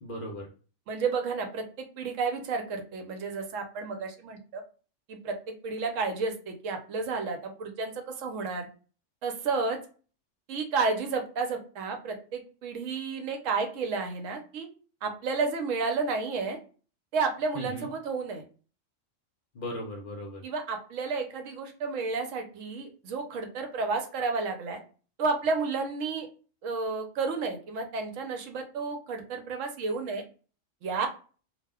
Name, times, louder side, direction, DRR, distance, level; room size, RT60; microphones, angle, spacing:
voice 1, 0.0-0.5 17.5-17.9 19.5-20.4, equal, 55° left, 0 dB, 0.6 m, -37 dB
voice 2, 0.9-4.6 5.1-8.7 9.2-9.8 10.5-14.7 15.0-16.6 17.1-18.4 20.4-24.8 25.2-26.3 26.6-30.2 30.8-31.1, right 4 dB, 75° right, 4 dB, 1.0 m, -31 dB
2.3 x 2.1 x 3.4 m, 0.38 s
omnidirectional pair, 1.3 m